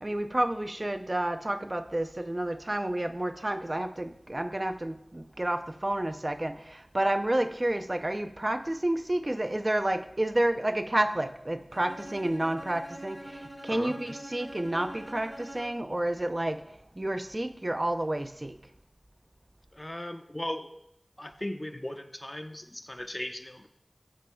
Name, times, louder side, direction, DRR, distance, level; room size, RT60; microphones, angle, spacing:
voice 1, 0.0-16.6 17.0-18.5, right 1 dB, 40° right, 8 dB, 0.5 m, -30 dB
Bowed string instrument, 11.7-16.0, equal, 15° right, 2.5 m, -44 dB
voice 2, 19.7-20.7 21.2-23.7, left 1 dB, 30° left, 6 dB, 0.9 m, -37 dB
15.0 x 10.0 x 2.3 m, 0.78 s
wide cardioid pair, 45°, 0 cm